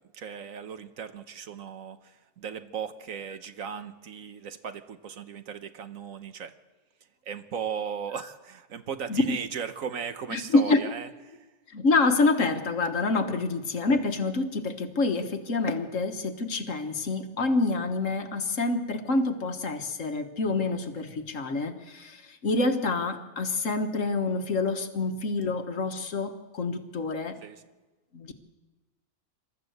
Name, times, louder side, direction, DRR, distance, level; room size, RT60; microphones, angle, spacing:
voice 1, 0.1-6.5 7.2-11.4 27.4-27.6, right 7 dB, 70° right, 11 dB, 1.4 m, -37 dB
voice 2, 10.3-10.8 11.7-27.4 28.1-28.3, left 3 dB, 60° left, 8 dB, 1.6 m, -27 dB
26.5 x 13.5 x 8.0 m, 1.2 s
omnidirectional pair, 1.5 m